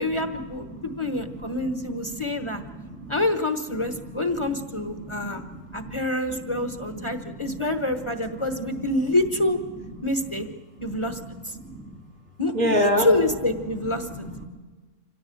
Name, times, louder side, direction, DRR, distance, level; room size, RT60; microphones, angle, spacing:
voice 1, 0.0-2.6 3.1-5.4 5.7-9.6 10.0-10.5 10.8-11.2 11.4-11.6 12.4-14.3, left 2 dB, 25° left, 8 dB, 1.1 m, -26 dB
voice 2, 1.6-2.5 2.8-3.2 3.8-4.2 5.0-6.0 6.5-6.6 7.1-7.5 10.8-11.0 11.3-12.0 12.5-13.1 14.0-14.4, equal, 85° right, 0 dB, 3.7 m, -30 dB
25.5 x 17.0 x 7.7 m, 1.3 s
omnidirectional pair, 1.3 m